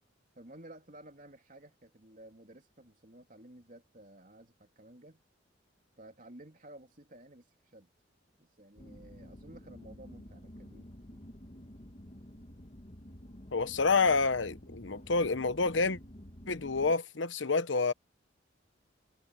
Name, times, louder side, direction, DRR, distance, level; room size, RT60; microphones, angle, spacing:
voice 1, 0.4-5.2 6.0-7.9 8.4-11.2, right 1 dB, 45° right, 3.4 m, -54 dB
Scary Ambiance, 8.8-16.9, equal, 35° left, 1.6 m, -50 dB
voice 2, 13.5-16.0 16.5-17.9, left 4 dB, 85° left, 1.0 m, -28 dB
head